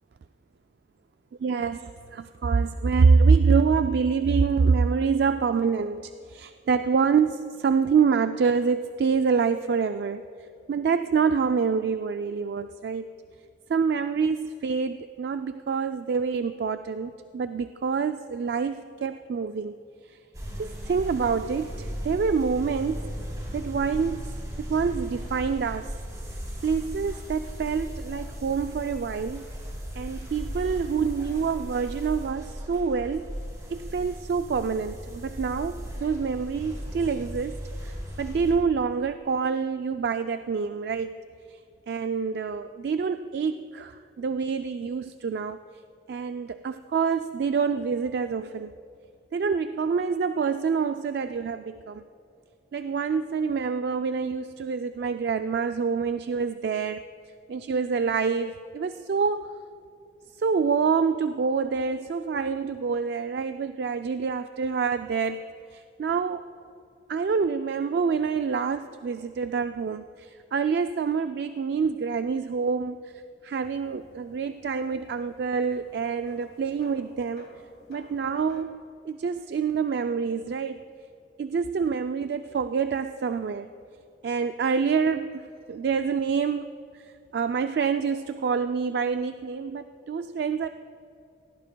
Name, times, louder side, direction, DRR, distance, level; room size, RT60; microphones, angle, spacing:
voice 1, 1.4-10.2 10.7-13.1 13.7-19.8 20.0-20.2 20.6-23.1 23.5-25.9 26.6-29.5 29.9-33.3 33.7-41.2 41.5-41.6 41.9-45.6 46.1-48.7 49.3-52.0 52.7-57.0 57.5-59.5 60.4-65.4 65.7-66.5 67.1-73.0 73.4-77.5 77.9-80.9 81.4-83.7 84.2-86.6 86.9-90.7, right 5 dB, 65° right, 9 dB, 0.3 m, -26 dB
sound 1, 20.3-38.5, equal, 20° right, 3.3 m, -37 dB
sound 2, 73.6-78.6, left 1 dB, 65° left, 1.8 m, -55 dB
18.0 x 17.0 x 2.2 m, 2.6 s
head